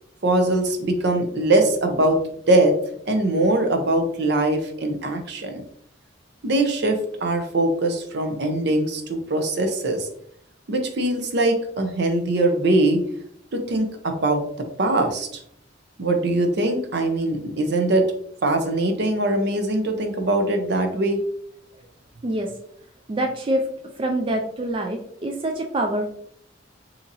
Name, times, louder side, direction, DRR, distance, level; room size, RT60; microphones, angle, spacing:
voice 1, 0.2-2.2 2.5-2.7 3.1-5.6 6.4-10.1 10.7-13.0 13.5-14.4 14.8-15.4 16.0-18.1 18.4-21.2, right 2 dB, 65° right, 5 dB, 0.6 m, -22 dB
voice 2, 22.2-22.6 23.1-23.7 24.0-26.1, right 1 dB, 30° right, 3 dB, 0.3 m, -25 dB
3.9 x 2.8 x 2.6 m, 0.68 s
head